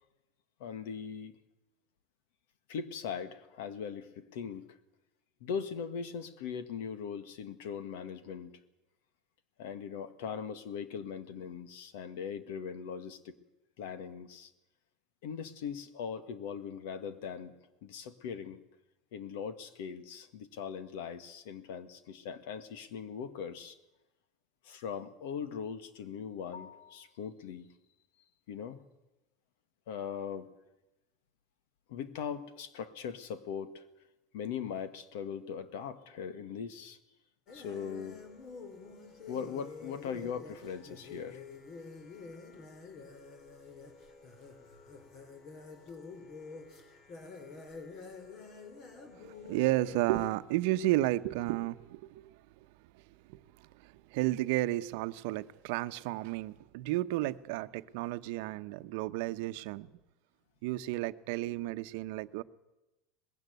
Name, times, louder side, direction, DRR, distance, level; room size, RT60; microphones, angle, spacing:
voice 1, 0.6-1.3 2.7-4.7 5.4-8.5 9.6-13.3 13.8-14.5 15.2-17.5 17.8-18.6 19.1-23.8 24.6-27.7 28.5-28.8 29.9-30.5 31.9-33.9 34.3-37.0 37.5-38.2 39.3-41.4 49.0-49.2, left 7 dB, 75° left, 1.8 m, -40 dB
sound 1, 37.5-50.3, left 4 dB, 45° left, 3.5 m, -48 dB
voice 2, 49.1-52.4 52.9-53.0 53.3-59.9 60.6-62.4, right 16 dB, 70° right, 0.8 m, -33 dB
20.0 x 16.0 x 9.5 m
supercardioid pair, 135°, 0 cm